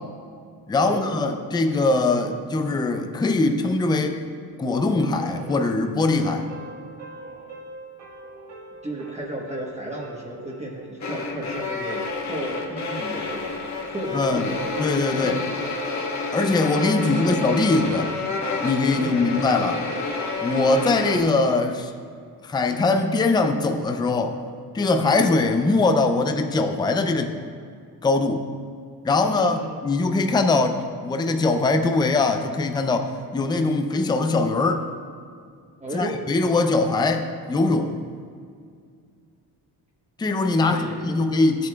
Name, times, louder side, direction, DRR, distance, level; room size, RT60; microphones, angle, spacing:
voice 1, 0.7-4.2 4.6-6.5 14.1-14.5 14.8-15.4 16.3-18.2 18.6-19.9 20.4-21.9 22.4-24.4 24.7-27.3 28.0-28.4 29.0-34.9 35.9-38.0 40.2-41.7, left 3 dB, 10° left, 6 dB, 0.4 m, -22 dB
sound 1, 4.7-10.8, right 2 dB, 90° right, 1.8 m, -43 dB
voice 2, 8.8-13.7 13.9-14.6 15.2-15.4 17.0-17.6 19.0-19.4 29.5-29.8 35.8-36.2 40.6-41.2, right 1 dB, 15° right, -3 dB, 1.1 m, -33 dB
sound 2, 11.0-21.2, left 3 dB, 45° left, 1.2 m, -29 dB
15.0 x 7.7 x 2.3 m, 2.2 s
cardioid pair, 130°, 40 cm